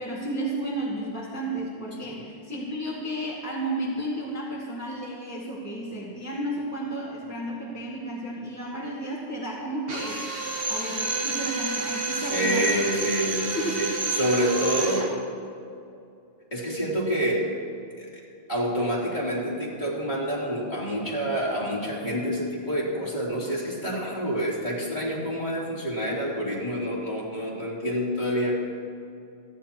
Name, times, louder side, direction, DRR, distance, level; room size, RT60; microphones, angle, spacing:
voice 1, 0.0-10.3 10.7-12.9 13.5-13.8, right 1 dB, 15° left, -6 dB, 2.0 m, -32 dB
Drill, 9.9-15.2, right 3 dB, 55° right, 1.5 m, -30 dB
voice 2, 12.2-15.1 16.5-17.5 18.0-18.1 18.5-28.6, equal, 40° left, -6 dB, 3.5 m, -27 dB
29.0 x 10.0 x 3.0 m, 2.6 s
omnidirectional pair, 1.2 m